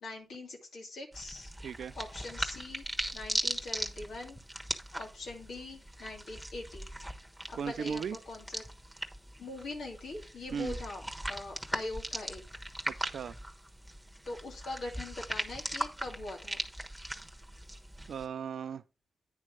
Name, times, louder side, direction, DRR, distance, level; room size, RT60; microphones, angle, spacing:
voice 1, 0.0-1.5 1.9-2.9 3.1-4.4 4.9-6.9 7.5-8.6 9.4-12.4 14.2-16.6, left 2 dB, 90° left, 2.4 m, -42 dB
sound 1, 1.1-18.3, right 1 dB, 10° right, 1.2 m, -39 dB
voice 2, 1.6-1.9 7.5-8.2 10.5-10.8 12.9-13.4 18.1-18.8, right 7 dB, 85° right, 0.5 m, -37 dB
9.6 x 3.3 x 6.0 m
cardioid pair, 50°, 0 cm